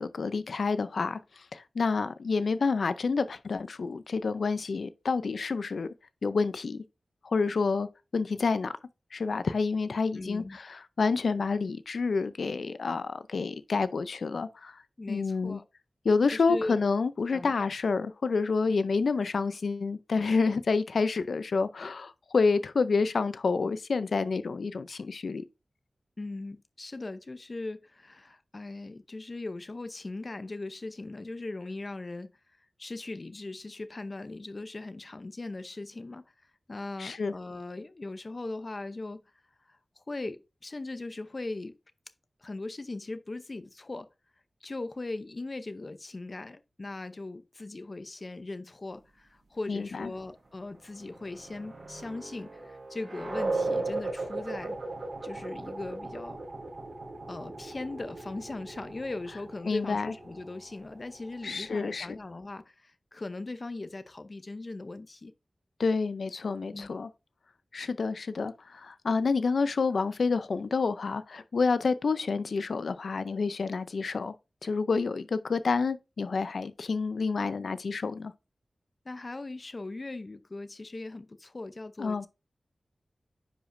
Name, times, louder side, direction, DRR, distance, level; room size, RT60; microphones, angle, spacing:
voice 1, 0.0-5.9 6.2-6.8 7.2-7.9 8.1-8.7 9.1-14.8 15.1-15.6 16.0-25.4 37.0-37.3 49.7-50.1 59.7-60.1 61.4-62.2 65.8-67.1 67.7-74.3 74.6-78.3 82.0-82.3, left 4 dB, 85° left, 0.4 m, -28 dB
voice 2, 10.2-10.6 15.0-15.7 16.3-16.8 17.3-17.5 26.2-32.3 32.8-36.2 36.7-39.2 39.7-41.8 42.4-44.1 44.6-54.8 55.2-56.4 57.3-65.3 66.7-66.9 79.0-82.3, left 2 dB, 40° left, 0.6 m, -39 dB
sound 1, 50.7-62.1, right 2 dB, 65° right, 3.6 m, -37 dB
10.0 x 5.0 x 2.6 m
wide cardioid pair, 85°, 0 cm